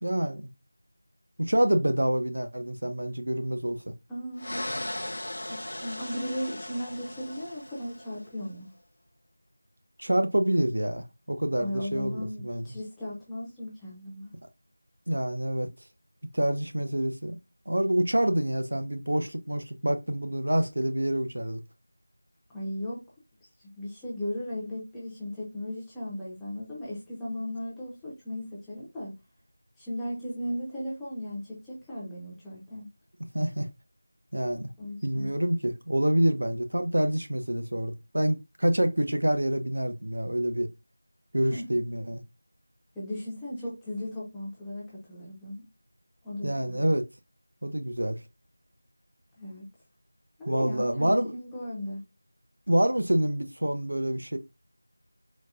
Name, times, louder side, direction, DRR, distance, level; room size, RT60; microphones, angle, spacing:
voice 1, 0.0-0.5 1.4-3.9 10.0-12.8 15.1-15.7 16.3-17.4 17.7-21.6 33.3-33.7 34.3-34.7 35.0-40.7 41.3-42.2 46.4-47.1 47.6-48.2 50.5-51.3 52.7-54.4, right 1 dB, 80° right, 0.6 m, -27 dB
voice 2, 4.1-4.8 5.5-8.7 11.6-14.3 22.5-23.0 23.8-29.1 29.8-32.9 34.8-35.3 41.5-41.7 43.0-45.6 46.2-46.8 49.4-49.6 50.4-52.0, left 1 dB, 5° left, 0.5 m, -36 dB
sound 1, 4.4-8.3, left 1 dB, 60° left, 0.5 m, -37 dB
4.1 x 2.1 x 2.4 m
figure-of-eight pair, 175°, 0 cm